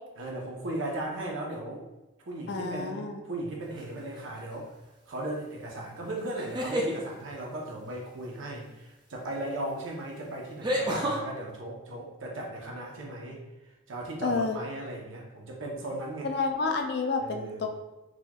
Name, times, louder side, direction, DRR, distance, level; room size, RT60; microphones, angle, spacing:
voice 1, 0.2-1.8 2.2-4.7 5.1-13.4 13.9-16.3 17.2-17.7, right 1 dB, 75° right, -1 dB, 0.8 m, -37 dB
voice 2, 2.5-3.2 14.2-14.6 16.2-17.7, left 4 dB, 55° left, 4 dB, 0.4 m, -29 dB
sound 1, 3.8-4.2 6.3-7.0 9.2-9.3 10.6-11.2, equal, 20° right, 0.4 m, -29 dB
4.1 x 2.9 x 2.3 m, 1.0 s
head